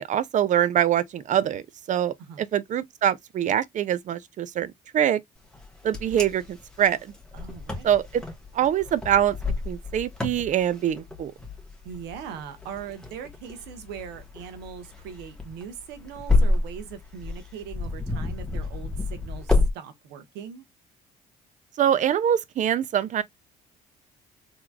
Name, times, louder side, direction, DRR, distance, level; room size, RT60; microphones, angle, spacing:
voice 1, 0.0-1.6 1.9-5.2 5.8-7.1 7.8-8.2 8.5-9.4 9.7-11.3 21.8-23.2, right 10 dB, 45° right, 0.5 m, -24 dB
Wind, 5.5-19.7, left 2 dB, 5° left, 1.3 m, -29 dB
voice 2, 7.3-7.9 11.8-20.6, right 7 dB, 90° right, 1.0 m, -40 dB
3.8 x 3.0 x 2.3 m
cardioid pair, 110°, 17 cm